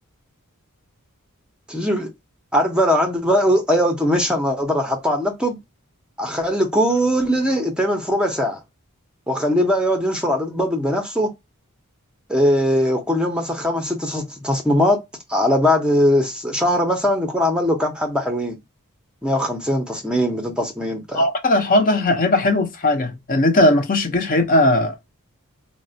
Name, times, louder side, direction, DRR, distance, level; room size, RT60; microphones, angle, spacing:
voice 1, 1.7-2.1 2.5-5.6 6.2-8.6 9.3-11.3 12.3-15.0 15.3-18.6 19.2-21.2, equal, 5° right, 0.6 m, -20 dB
voice 2, 21.1-24.9, left 1 dB, 40° left, 0.6 m, -18 dB
3.7 x 2.1 x 2.6 m
head